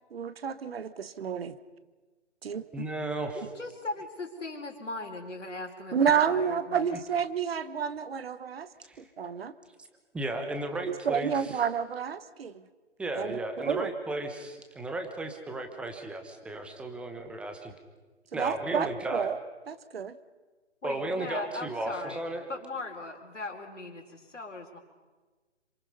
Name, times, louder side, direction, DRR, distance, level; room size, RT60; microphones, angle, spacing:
voice 1, 0.1-1.6 2.4-2.8 5.9-8.7 9.0-9.5 11.0-12.6 13.1-13.4 13.7-13.9 18.3-19.4 19.7-20.2, right 7 dB, 55° right, 14 dB, 1.3 m, -30 dB
voice 2, 2.7-3.4 8.8-9.0 10.1-11.6 13.0-17.7 18.3-19.3 20.8-22.5, right 2 dB, 5° right, 5 dB, 1.1 m, -34 dB
voice 3, 3.4-6.0 6.2-7.0 20.8-22.2 22.5-24.8, left 2 dB, 90° left, 2 dB, 4.3 m, -39 dB
27.5 x 26.0 x 5.5 m, 1.3 s
figure-of-eight pair, 145°, 35 cm